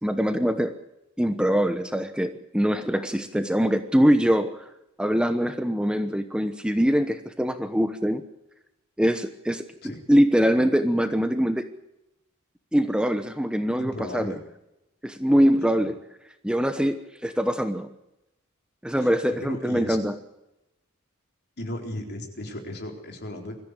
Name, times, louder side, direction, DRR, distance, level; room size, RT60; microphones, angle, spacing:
voice 1, 0.0-0.8 1.2-4.6 5.0-8.3 9.0-9.6 10.1-11.7 12.7-14.4 15.0-15.9 16.4-17.9 18.8-20.1, equal, 5° right, 8 dB, 1.0 m, -23 dB
voice 2, 13.8-14.4 15.6-15.9 19.0-20.0 21.6-23.5, left 1 dB, 50° left, 3 dB, 4.1 m, -36 dB
22.5 x 14.5 x 8.2 m, 0.89 s
head